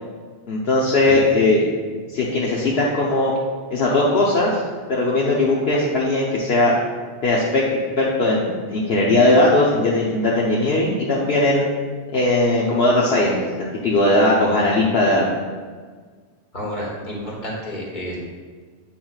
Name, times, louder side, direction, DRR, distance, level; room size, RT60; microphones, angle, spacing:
voice 1, 0.5-1.6 2.1-3.3 3.7-4.6 4.9-6.7 7.2-7.6 8.0-11.7 12.1-15.2, left 2 dB, 65° left, -5 dB, 1.1 m, -18 dB
voice 2, 16.5-18.2, equal, 45° left, -4 dB, 1.8 m, -30 dB
9.1 x 5.8 x 2.4 m, 1.5 s
omnidirectional pair, 1.1 m